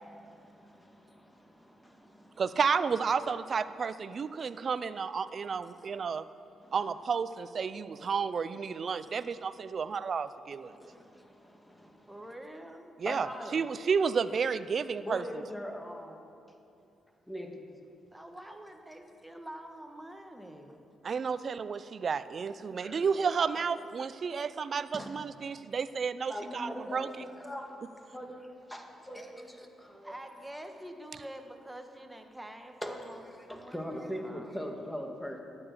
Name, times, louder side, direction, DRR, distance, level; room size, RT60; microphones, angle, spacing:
voice 1, 0.0-2.4 4.4-4.5 5.6-6.1 6.6-6.8 8.0-8.1 9.0-9.3 10.6-12.3 13.1-13.7 15.0-16.2 17.3-17.7 21.2-21.4 22.1-22.2 22.8-23.4 23.8-23.9 24.9-25.2 26.3-30.1 32.8-35.4, equal, 5° left, 3 dB, 1.8 m, -42 dB
voice 2, 2.4-6.3 6.7-10.7 13.0-13.3 13.5-15.2 21.0-27.1, right 6 dB, 55° right, 14 dB, 0.5 m, -31 dB
voice 3, 12.1-12.9 18.1-20.9 30.0-33.2 33.5-34.5, right 1 dB, 10° right, 5 dB, 1.5 m, -46 dB
13.0 x 8.9 x 6.7 m, 2.6 s
supercardioid pair, 60°, 0 cm